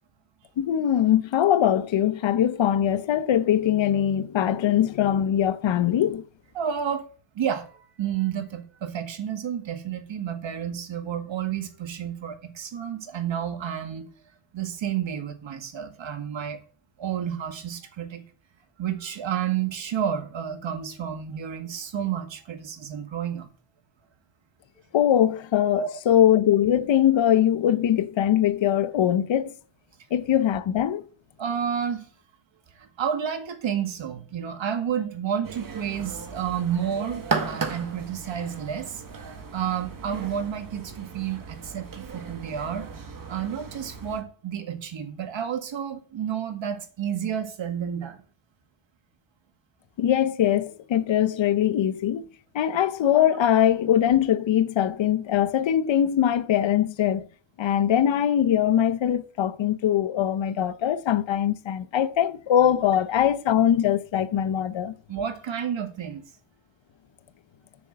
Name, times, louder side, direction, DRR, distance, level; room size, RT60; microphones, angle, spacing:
voice 1, 0.6-6.2 24.9-29.5 30.1-31.0 50.0-52.3 52.5-57.3 57.6-64.9, left 10 dB, 65° left, 0.9 m, -22 dB
voice 2, 6.6-7.1 7.4-14.1 14.5-16.6 17.0-18.2 18.8-23.5 25.8-25.9 31.4-32.1 32.8-39.0 39.5-42.9 43.3-48.2 65.1-66.2, right 8 dB, 65° right, 1.9 m, -30 dB
sound 1, 35.4-44.2, right 4 dB, 40° right, 1.9 m, -36 dB
7.0 x 6.5 x 7.5 m
cardioid pair, 75°, 48 cm